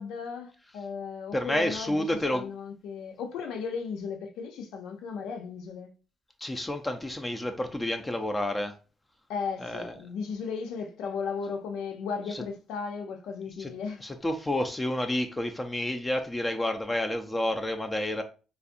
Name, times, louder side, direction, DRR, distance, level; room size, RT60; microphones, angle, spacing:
voice 1, 0.0-2.1 2.3-5.9 9.3-14.0, left 5 dB, 90° left, 0.6 m, -35 dB
voice 2, 1.3-2.5 6.4-8.7 9.6-9.9 12.3-12.4 13.6-13.7 14.0-18.2, left 1 dB, 15° left, 0.5 m, -30 dB
4.0 x 2.3 x 2.5 m
cardioid pair, 90°, 0 cm